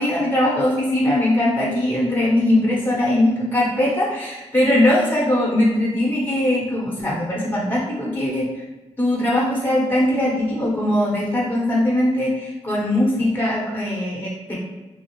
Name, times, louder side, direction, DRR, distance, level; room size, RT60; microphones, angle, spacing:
voice 1, 0.0-8.5 9.0-14.6, left 1 dB, 15° left, -5 dB, 0.9 m, -20 dB
2.4 x 2.0 x 3.0 m, 1.2 s
cardioid pair, 50°, 12 cm